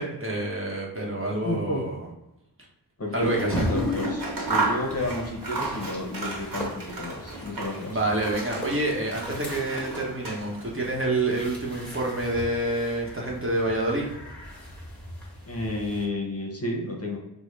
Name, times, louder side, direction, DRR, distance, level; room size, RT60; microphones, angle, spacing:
voice 1, 0.0-2.0 3.1-3.6 7.9-14.1, right 1 dB, 30° right, -2 dB, 1.0 m, -27 dB
voice 2, 1.4-1.8 3.0-8.0 15.5-17.2, left 2 dB, 35° left, 0 dB, 0.8 m, -31 dB
sound 1, 3.2-16.0, left 1 dB, 5° left, 1.3 m, -37 dB
Scissors, 3.4-7.9 8.2-10.8, right 3 dB, 55° right, 1.0 m, -33 dB
3.6 x 2.1 x 3.2 m, 0.92 s
wide cardioid pair, 60°, 41 cm